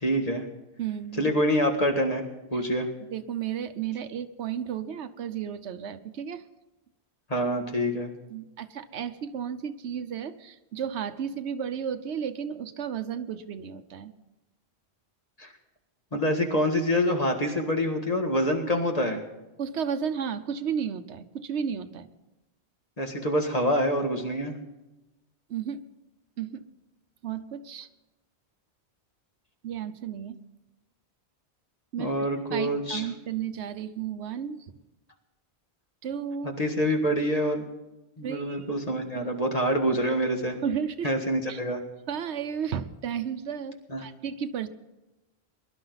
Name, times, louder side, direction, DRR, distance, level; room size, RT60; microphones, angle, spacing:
voice 1, 0.0-0.4 1.2-2.2 2.5-2.9 7.3-8.1 15.4-15.5 16.1-19.2 23.0-24.6 32.0-33.0 36.6-37.7 38.2-40.6 41.0-41.8 43.9-44.0, equal, 35° left, 3 dB, 1.9 m, -26 dB
voice 2, 0.8-1.3 2.5-2.6 3.1-6.4 8.3-14.1 19.6-22.1 25.5-25.8 26.4-26.6 27.2-27.9 29.6-30.4 31.9-32.1 32.5-34.7 36.0-36.6 38.2-38.7 40.6-41.1 41.5-41.6 42.1-44.7, right 8 dB, 85° right, 9 dB, 1.1 m, -33 dB
21.5 x 11.5 x 4.0 m, 1.0 s
omnidirectional pair, 1.1 m